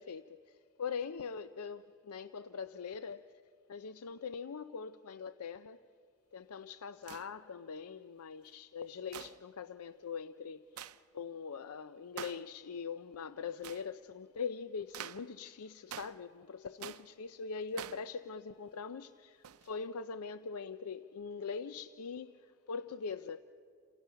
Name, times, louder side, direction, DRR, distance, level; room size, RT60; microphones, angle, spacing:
voice 1, 0.0-3.2 3.7-5.8 6.3-10.8 11.1-23.4, left 5 dB, 80° left, 0.5 m, -42 dB
sound 1, 7.0-7.3 9.1-9.4 10.8-11.0 12.2-12.5 13.6-13.9 14.9-15.3 15.9-16.2 16.8-17.1 17.7-18.1 19.4-19.7, right 9 dB, 80° right, 0.6 m, -46 dB
30.0 x 27.5 x 5.7 m
head